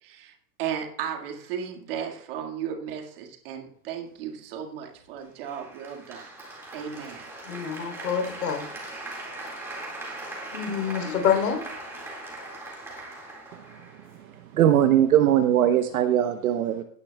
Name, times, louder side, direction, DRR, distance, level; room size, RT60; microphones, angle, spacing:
voice 1, 0.0-0.3 0.6-6.3 6.7-7.3, right 8 dB, 35° right, 2 dB, 1.9 m, -35 dB
Applause, 5.4-14.5, right 2 dB, 5° right, 1.9 m, -40 dB
voice 2, 7.5-8.7 9.7-9.8 10.5-11.6, left 7 dB, 80° left, 5 dB, 3.4 m, -27 dB
voice 3, 14.5-16.8, right 11 dB, 60° right, 7 dB, 0.9 m, -20 dB
16.5 x 9.8 x 2.3 m, 0.64 s
supercardioid pair, 175°, 48 cm